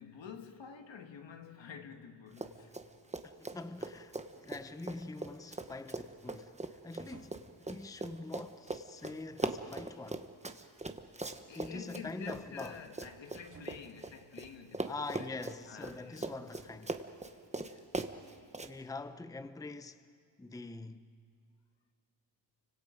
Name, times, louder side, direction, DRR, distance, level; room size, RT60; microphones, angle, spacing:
voice 1, 0.0-2.8 11.4-16.3 17.6-17.9, left 6 dB, 80° left, 1.7 m, -49 dB
Run, 2.3-2.9 3.1-14.5 14.7-18.7, right 2 dB, 15° right, 1.0 m, -40 dB
voice 2, 3.2-10.3 11.5-12.8 14.8-17.0 18.6-20.0 20.4-21.1, left 3 dB, 10° left, 0.6 m, -44 dB
sound 1, 7.0-7.7 9.0-9.6 10.6-10.7 13.3-14.2 15.0-15.3, right 4 dB, 45° right, 2.2 m, -58 dB
30.0 x 25.0 x 5.1 m
wide cardioid pair, 95°, 44 cm